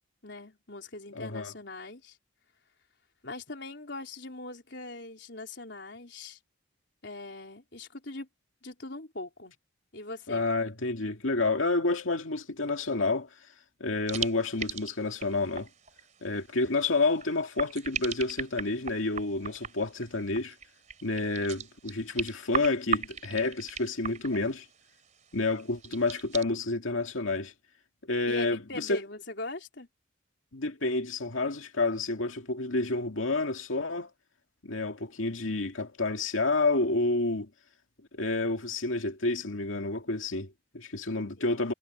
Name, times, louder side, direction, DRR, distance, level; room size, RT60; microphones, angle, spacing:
voice 1, 0.2-2.2 3.2-6.4 7.0-8.3 8.6-9.6 9.9-10.5 28.3-29.9 41.4-41.6, left 2 dB, 60° left, 4.3 m, -41 dB
voice 2, 1.1-1.5 10.3-13.3 13.8-15.7 16.2-20.5 21.0-24.7 25.3-27.5 28.1-29.0 30.5-34.1 34.6-37.5 38.1-41.7, left 3 dB, 85° left, 2.3 m, -29 dB
sound 1, 14.1-26.4, right 7 dB, 40° right, 3.8 m, -38 dB
head